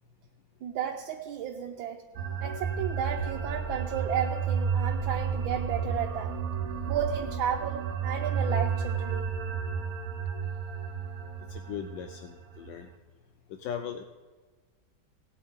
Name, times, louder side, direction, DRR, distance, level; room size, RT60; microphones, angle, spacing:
voice 1, 0.6-2.0 2.4-6.3 6.9-9.3, right 8 dB, 80° right, 2 dB, 1.5 m, -33 dB
sound 1, 2.2-13.0, right 6 dB, 60° right, 1.0 m, -32 dB
voice 2, 11.5-12.9 13.5-14.0, left 8 dB, 75° left, 7 dB, 1.2 m, -38 dB
18.0 x 9.0 x 3.6 m, 1.4 s
omnidirectional pair, 2.2 m